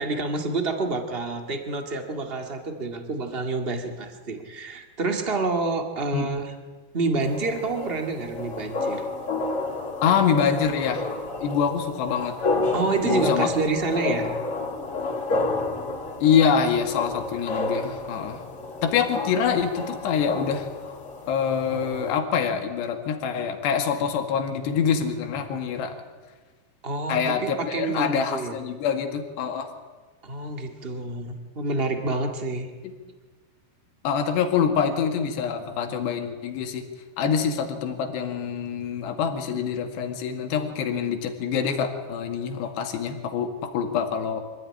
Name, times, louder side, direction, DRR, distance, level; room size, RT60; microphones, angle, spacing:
voice 1, 0.0-6.5 6.9-9.1 12.7-14.3 26.8-28.6 30.2-32.7, right 3 dB, 45° right, 5 dB, 0.7 m, -28 dB
sound 1, 7.2-22.2, left 3 dB, 35° left, 3.3 m, -30 dB
voice 2, 10.0-11.0 11.4-12.4 13.0-13.5 16.2-18.4 18.8-20.7 21.3-26.0 27.1-29.7 32.8-32.9 34.0-36.9 37.2-44.4, left 7 dB, 85° left, 5 dB, 4.1 m, -25 dB
25.0 x 15.5 x 9.9 m, 1.3 s
omnidirectional pair, 4.8 m